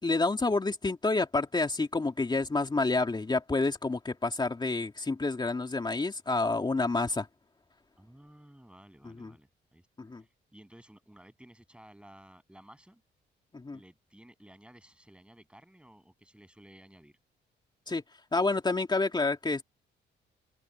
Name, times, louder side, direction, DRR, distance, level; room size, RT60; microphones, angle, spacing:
voice 1, 0.0-7.3 9.0-9.3 10.0-10.2 13.5-13.8 17.9-18.0 18.3-19.6, left 3 dB, 20° left, 2.6 m, -29 dB
voice 2, 8.0-9.9 10.1-13.0 13.7-17.2, right 1 dB, 5° right, 8.0 m, -55 dB
cardioid pair, 90°, 20 cm